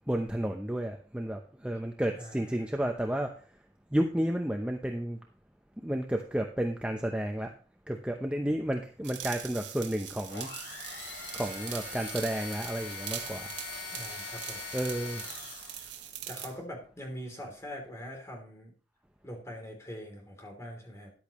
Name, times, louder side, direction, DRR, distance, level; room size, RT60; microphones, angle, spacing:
voice 1, 0.1-3.3 3.9-5.2 5.8-7.5 7.9-10.5 11.3-13.5 14.7-15.2, right 1 dB, 5° right, 3 dB, 0.7 m, -31 dB
voice 2, 2.1-2.7 13.9-14.6 16.3-18.7 19.2-21.1, equal, 15° left, 1 dB, 3.2 m, -43 dB
sound 1, 9.0-16.5, right 10 dB, 80° right, 1.6 m, -42 dB
sound 2, 10.3-16.1, left 4 dB, 75° left, 5.1 m, -42 dB
13.5 x 10.5 x 3.1 m, 0.40 s
head